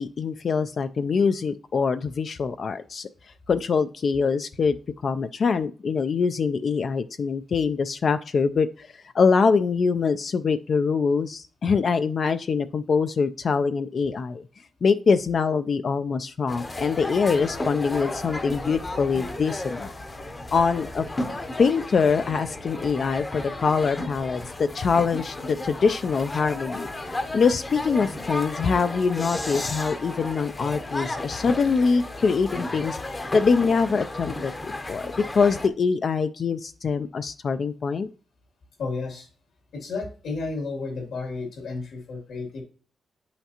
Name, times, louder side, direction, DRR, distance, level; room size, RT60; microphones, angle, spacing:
voice 1, 0.0-3.1 3.5-4.8 5.0-14.4 14.8-19.9 20.5-21.0 21.6-26.9 27.3-34.5 34.9-38.1, left 5 dB, 50° left, 10 dB, 0.3 m, -24 dB
sound 1, 16.5-35.7, left 2 dB, 25° left, 0.7 m, -34 dB
voice 2, 38.8-39.3 39.7-42.6, left 3 dB, 80° left, 1 dB, 2.8 m, -32 dB
8.9 x 5.7 x 2.9 m, 0.38 s
wide cardioid pair, 130°, 0 cm